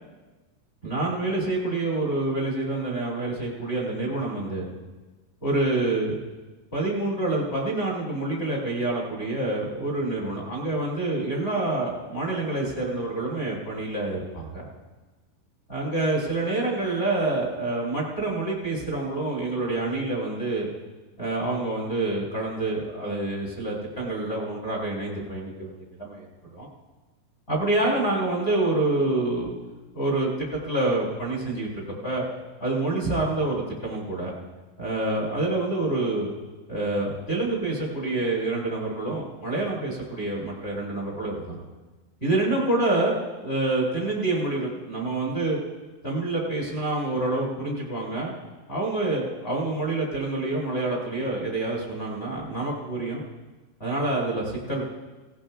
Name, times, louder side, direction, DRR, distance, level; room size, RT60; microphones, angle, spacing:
voice 1, 0.8-4.7 5.4-6.2 6.7-14.6 15.7-20.7 21.2-26.3 26.5-26.7 27.5-29.5 29.9-31.7 32.0-32.2 32.6-34.3 34.8-36.3 36.7-41.6 42.2-45.6 46.0-48.4 48.7-53.2 53.8-54.8, right 2 dB, 20° left, -4 dB, 1.8 m, -27 dB
18.0 x 18.0 x 2.4 m, 1.2 s
omnidirectional pair, 5.9 m